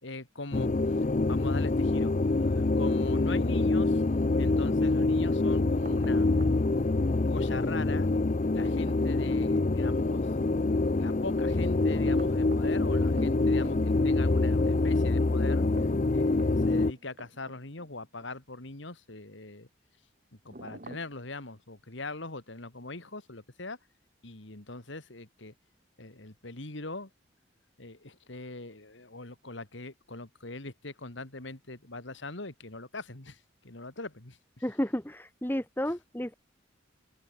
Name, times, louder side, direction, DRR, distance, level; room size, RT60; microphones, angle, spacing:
voice 1, 0.0-0.7 1.3-2.1 2.4-4.0 4.4-6.3 6.8-6.9 7.2-8.1 8.5-10.3 11.0-15.7 16.1-19.7 20.4-23.8 24.2-25.5 26.0-27.1 27.8-34.4, left 2 dB, 70° left, 2.5 m, -41 dB
sound 1, 0.5-16.9, left 2 dB, 35° left, 0.5 m, -26 dB
sound 2, 5.5-6.8 8.4-9.8 11.9-13.8 15.5-17.9 18.2-18.3 20.5-21.2, right 1 dB, 40° right, 2.2 m, -48 dB
voice 2, 34.6-36.3, equal, 10° left, 1.4 m, -32 dB
open air
head